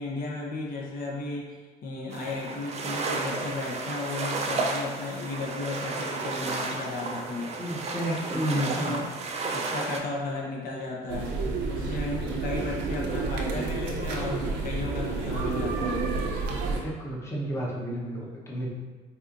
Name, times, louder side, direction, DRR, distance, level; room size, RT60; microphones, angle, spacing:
voice 1, 0.0-7.5 8.3-9.1 9.5-11.4 11.7-16.0, left 3 dB, 60° left, -2 dB, 0.6 m, -34 dB
sound 1, 2.1-10.0, right 3 dB, 40° right, 0.4 m, -32 dB
voice 2, 7.6-9.0 16.8-18.7, right 1 dB, 15° left, -4 dB, 0.7 m, -32 dB
sound 2, 11.1-16.8, right 3 dB, 90° right, 0.6 m, -30 dB
4.2 x 2.4 x 2.5 m, 1.3 s
cardioid pair, 110°, 17 cm